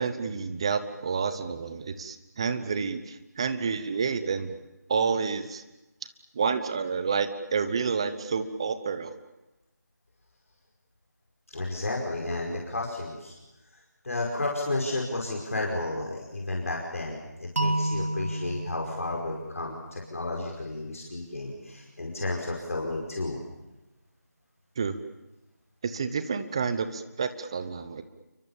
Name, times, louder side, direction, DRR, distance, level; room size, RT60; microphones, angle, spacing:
voice 1, 0.0-4.6 4.9-5.6 6.3-9.1 24.8-25.0 25.8-28.0, right 5 dB, 15° right, 11 dB, 1.0 m, -29 dB
voice 2, 11.5-13.3 14.0-23.4, left 2 dB, 50° left, -1 dB, 5.4 m, -32 dB
sound 1, 17.6-20.5, right 1 dB, 50° right, 2.4 m, -32 dB
29.5 x 24.0 x 7.2 m, 0.99 s
figure-of-eight pair, 170°, 10 cm